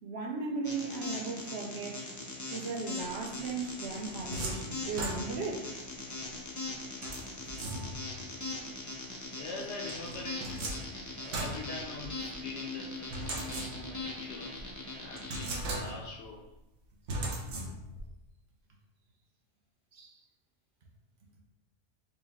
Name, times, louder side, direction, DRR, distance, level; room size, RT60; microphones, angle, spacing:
voice 1, 0.0-2.1 2.5-5.7 17.2-17.3 19.9-20.2, right 4 dB, 65° right, -1 dB, 0.9 m, -37 dB
sound 1, 0.6-15.5, left 2 dB, 30° left, 0.3 m, -40 dB
sound 2, 3.7-5.6 7.0-8.2 9.9-12.4 13.1-14.1 14.6-14.7 15.2-16.2 17.1-18.1, right 2 dB, 85° right, 1.1 m, -38 dB
voice 2, 9.4-10.6 11.2-14.7 14.9-16.4, left 3 dB, 70° left, -1 dB, 0.9 m, -43 dB
4.6 x 2.1 x 3.5 m, 0.90 s
omnidirectional pair, 1.2 m